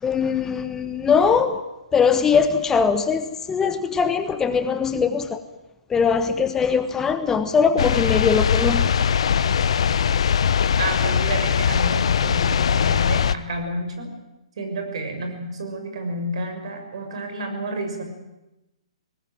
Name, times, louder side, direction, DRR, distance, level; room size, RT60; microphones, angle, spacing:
voice 1, 0.0-1.6 1.9-5.4 5.9-8.9, left 6 dB, 15° left, 10 dB, 1.3 m, -21 dB
sound 1, 7.8-13.4, left 7 dB, 65° left, 1.0 m, -20 dB
voice 2, 10.8-14.1 14.6-18.0, right 1 dB, 60° right, 6 dB, 6.4 m, -30 dB
21.5 x 19.5 x 9.1 m, 0.97 s
hypercardioid pair, 130°, 3 cm